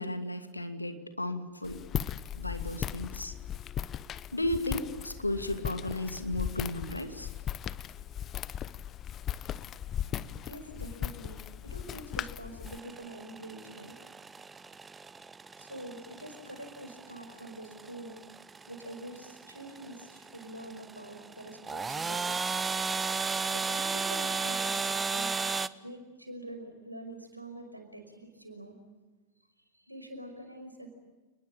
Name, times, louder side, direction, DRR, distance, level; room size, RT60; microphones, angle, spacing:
voice 1, 0.0-1.8 2.4-3.3 4.3-7.3 10.1-10.3, left 1 dB, 85° left, 8 dB, 2.5 m, -34 dB
Walk footsteps, 1.6-12.8, left 10 dB, 30° left, 0.8 m, -38 dB
voice 2, 10.4-14.0 14.5-14.7 14.9-15.0 15.5-18.2 18.6-22.4 23.5-25.5 25.8-28.8 29.7-30.9, right 1 dB, 90° right, 6 dB, 5.5 m, -45 dB
sound 1, 12.7-25.7, right 4 dB, 15° right, 0.9 m, -35 dB
29.5 x 20.5 x 8.9 m, 1.3 s
figure-of-eight pair, 90°, 0 cm